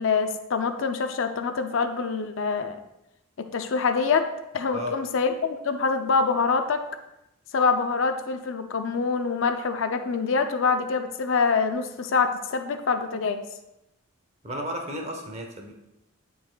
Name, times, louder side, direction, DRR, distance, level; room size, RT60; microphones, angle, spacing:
voice 1, 0.0-2.8 3.4-4.3 4.5-6.8 7.5-13.4, left 5 dB, 60° left, 7 dB, 0.5 m, -25 dB
voice 2, 14.4-15.7, equal, 30° right, 2 dB, 0.8 m, -33 dB
11.0 x 4.1 x 2.3 m, 0.91 s
head